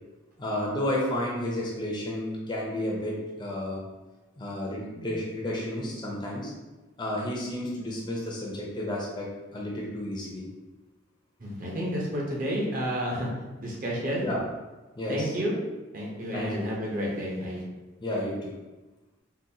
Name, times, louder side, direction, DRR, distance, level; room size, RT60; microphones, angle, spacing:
voice 1, 0.4-3.8 4.4-6.5 7.0-10.5 14.2-14.4 15.0-15.3 16.3-16.7 18.0-18.5, left 1 dB, 20° left, -3 dB, 0.5 m, -31 dB
voice 2, 11.4-13.3 13.6-14.3 15.1-15.6 15.9-17.6, equal, 45° right, -3 dB, 0.7 m, -30 dB
3.8 x 2.2 x 2.7 m, 1.1 s
head